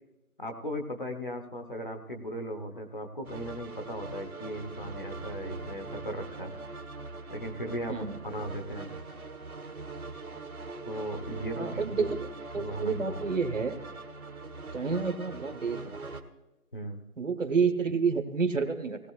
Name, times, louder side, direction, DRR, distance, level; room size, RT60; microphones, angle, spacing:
voice 1, 0.4-6.5 7.3-8.9 10.9-12.1 12.5-13.2 16.7-17.0, equal, 35° left, 3 dB, 0.9 m, -37 dB
sound 1, 3.2-16.2, right 3 dB, 75° right, 1.5 m, -42 dB
voice 2, 11.6-12.2 12.5-13.8 14.7-16.0 17.2-19.0, right 5 dB, 60° right, 7 dB, 1.1 m, -29 dB
18.5 x 14.0 x 2.3 m, 1.0 s
figure-of-eight pair, 175°, 43 cm